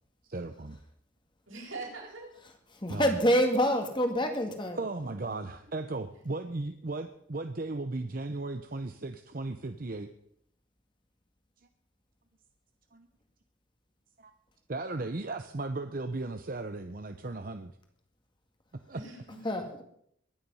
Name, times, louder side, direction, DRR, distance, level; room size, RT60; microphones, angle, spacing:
voice 1, 0.3-0.8 2.9-3.2 4.8-10.1 12.9-13.1 14.2-14.3 14.7-17.7 18.9-19.0, right 2 dB, 45° right, 8 dB, 0.7 m, -36 dB
voice 2, 1.5-2.3 5.2-5.3 18.9-19.8, right 3 dB, 85° right, -3 dB, 7.9 m, -43 dB
voice 3, 2.8-4.8 19.4-19.7, equal, 25° left, 5 dB, 2.0 m, -26 dB
22.5 x 10.0 x 5.6 m, 0.70 s
head